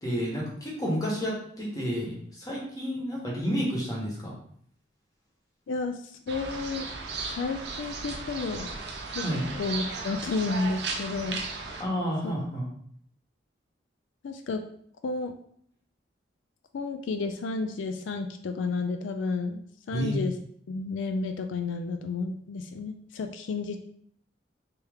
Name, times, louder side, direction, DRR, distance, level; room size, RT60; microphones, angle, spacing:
voice 1, 0.0-4.3 9.2-9.4 11.8-12.7 19.9-20.1, equal, 20° left, -3 dB, 1.0 m, -30 dB
voice 2, 5.7-6.9 7.3-8.7 9.1-9.3 9.6-11.4 12.2-12.3 14.2-14.6 15.0-15.3 16.7-20.3 20.7-23.8, left 3 dB, 80° left, 6 dB, 0.3 m, -31 dB
sound 1, 6.3-11.8, right 4 dB, 60° right, 0.6 m, -36 dB
3.5 x 2.8 x 3.4 m, 0.64 s
head